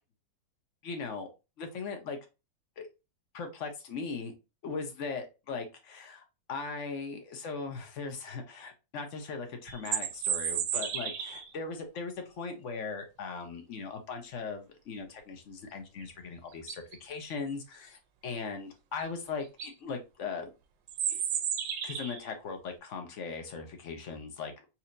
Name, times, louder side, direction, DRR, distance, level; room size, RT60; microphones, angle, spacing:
voice 1, 0.8-1.3 1.6-2.2 2.8-2.9 3.3-4.3 4.6-20.5 21.1-21.2 21.8-24.5, left 4 dB, 55° left, 5 dB, 0.9 m, -39 dB
sound 1, 9.7-11.5 16.0-16.1 16.5-17.0 19.0-19.1 19.4-19.7 20.9-22.3, right 9 dB, 80° right, 1.3 m, -33 dB
4.3 x 2.8 x 2.5 m, 0.27 s
omnidirectional pair, 2.0 m